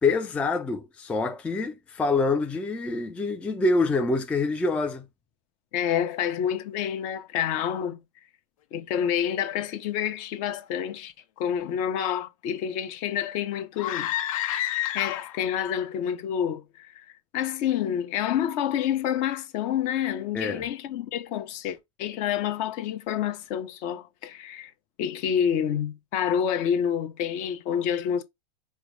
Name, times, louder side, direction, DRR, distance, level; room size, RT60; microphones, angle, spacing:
voice 1, 0.0-5.0 20.3-20.7, left 3 dB, 5° left, 0.4 m, -26 dB
voice 2, 5.7-8.0 8.7-14.1 14.9-17.0 17.3-24.7 25.0-28.2, left 9 dB, 45° left, 0.9 m, -28 dB
sound 1, 13.7-15.5, left 13 dB, 70° left, 0.8 m, -29 dB
4.8 x 2.0 x 4.6 m
supercardioid pair, 135°, 17 cm